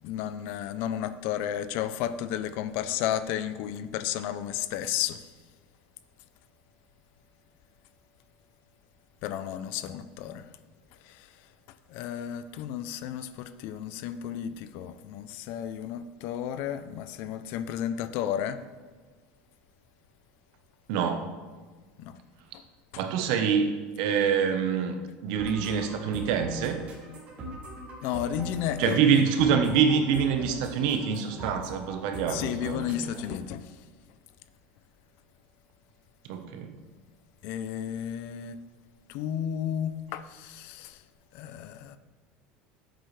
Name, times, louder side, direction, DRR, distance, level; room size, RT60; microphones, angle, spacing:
voice 1, 0.0-5.3 9.2-10.5 11.0-18.6 22.0-22.2 22.5-22.6 28.0-29.0 32.3-33.9 37.4-38.6 39.1-41.0 41.3-42.0, left 10 dB, 65° left, 0.6 m, -33 dB
voice 2, 20.9-21.3 23.0-26.8 28.8-32.9 36.2-36.7, right 7 dB, 75° right, 1.0 m, -26 dB
sound 1, 25.4-33.4, right 2 dB, 35° right, 2.7 m, -42 dB
11.5 x 7.9 x 3.3 m
cardioid pair, 140°, 4 cm